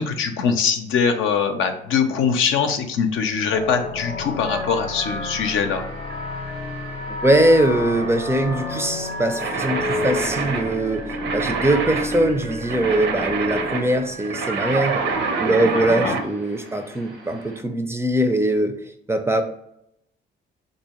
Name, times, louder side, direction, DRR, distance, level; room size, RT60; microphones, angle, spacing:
voice 1, 0.0-5.8 15.7-16.2, left 6 dB, 85° left, 6 dB, 0.6 m, -22 dB
sound 1, 3.5-14.2, left 3 dB, 30° left, 0.6 m, -31 dB
sound 2, 4.5-17.6, right 4 dB, 90° right, 1.0 m, -41 dB
voice 2, 7.1-15.1 15.4-18.8 19.1-19.4, right 1 dB, 15° right, 7 dB, 0.4 m, -21 dB
sound 3, 9.4-16.3, right 4 dB, 70° right, 0.6 m, -26 dB
3.7 x 2.7 x 2.9 m, 0.78 s
cardioid pair, 90°, 20 cm